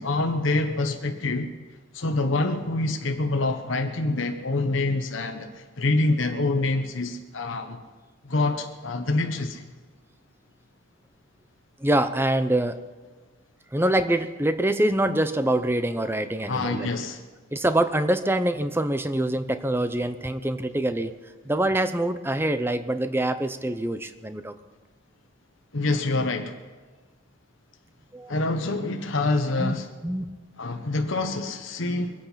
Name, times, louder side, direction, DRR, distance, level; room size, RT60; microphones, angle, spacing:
voice 1, 0.0-1.5 1.9-7.8 8.2-9.7 16.5-17.2 25.7-26.5 28.3-29.9 30.6-32.1, left 2 dB, 70° left, 5 dB, 1.1 m, -26 dB
voice 2, 11.8-12.8 13.7-16.9 17.5-21.1 21.4-24.5 28.1-28.3 29.6-29.7 30.0-30.3, right 1 dB, 10° right, 10 dB, 0.6 m, -25 dB
23.5 x 9.0 x 5.8 m, 1.3 s
head